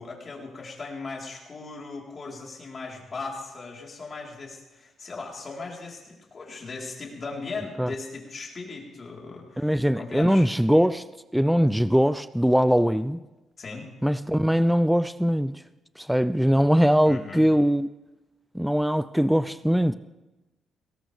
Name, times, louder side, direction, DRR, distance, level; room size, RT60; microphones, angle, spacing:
voice 1, 0.0-10.5 13.6-13.9 17.1-17.5, left 3 dB, 40° left, -2 dB, 4.2 m, -38 dB
voice 2, 9.6-11.0 11.3-13.2 14.0-15.6 16.0-17.9 18.5-19.9, equal, ahead, 14 dB, 0.4 m, -21 dB
20.0 x 17.5 x 3.5 m, 1.1 s
cardioid pair, 90°, 0 cm